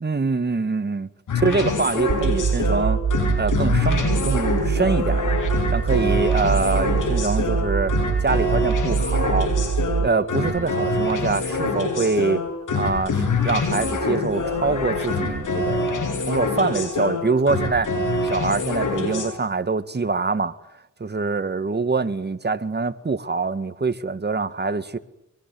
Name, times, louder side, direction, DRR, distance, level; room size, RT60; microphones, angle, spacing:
voice 1, 0.0-1.1 1.4-3.0 3.4-5.4 5.7-7.9 8.2-9.5 10.0-12.4 12.7-17.9 18.2-20.5 21.0-25.0, right 4 dB, 35° right, 2.0 m, -24 dB
sound 1, 1.3-19.3, left 3 dB, 85° left, 7.9 m, -25 dB
sound 2, 2.1-11.1, right 7 dB, 70° right, 3.4 m, -24 dB
24.5 x 23.0 x 9.3 m
cardioid pair, 75°, 30 cm